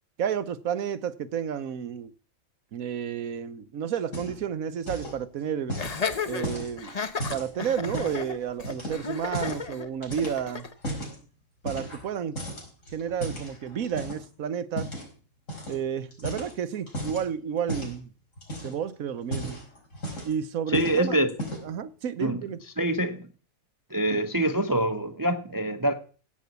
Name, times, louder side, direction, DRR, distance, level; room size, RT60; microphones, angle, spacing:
voice 1, 0.2-2.1 2.7-5.8 6.3-7.0 7.3-10.7 11.6-12.4 12.9-14.9 15.7-18.1 18.6-19.6 20.2-21.3 21.6-22.6, right 8 dB, 85° right, 1.3 m, -31 dB
sound 1, 4.0-4.5 4.8-5.2 5.7-8.2 8.6-9.7 10.0-11.2 11.6-12.1 12.4-14.3 14.8-15.1 15.5-15.8 16.1-17.2 17.7-18.0 18.4-18.8 19.2-20.4 20.7-21.0 21.3-21.8, equal, 65° left, 5.4 m, -35 dB
Laughter, 5.8-10.7, left 5 dB, 35° left, 0.9 m, -33 dB
voice 2, 20.7-21.3 22.2-22.4 22.8-23.3 23.9-25.9, right 1 dB, 20° right, 0.7 m, -25 dB
16.0 x 5.5 x 8.2 m
omnidirectional pair, 1.4 m